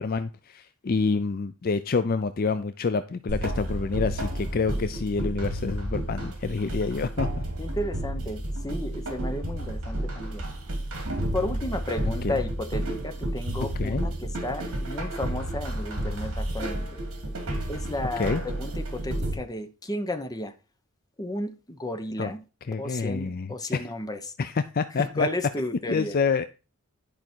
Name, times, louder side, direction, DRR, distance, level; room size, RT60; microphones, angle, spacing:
voice 1, 0.0-7.4 12.2-12.3 13.8-14.0 18.2-18.4 22.2-22.3 22.7-23.8 24.4-25.3 25.9-26.4, left 4 dB, 45° left, 0.4 m, -27 dB
sound 1, 3.3-19.3, right 1 dB, 70° right, 2.8 m, -31 dB
voice 2, 7.6-10.4 11.2-16.8 17.7-20.5 21.2-22.4 22.7-24.3 25.0-26.2, left 1 dB, 15° left, 0.9 m, -33 dB
11.0 x 5.0 x 4.5 m
head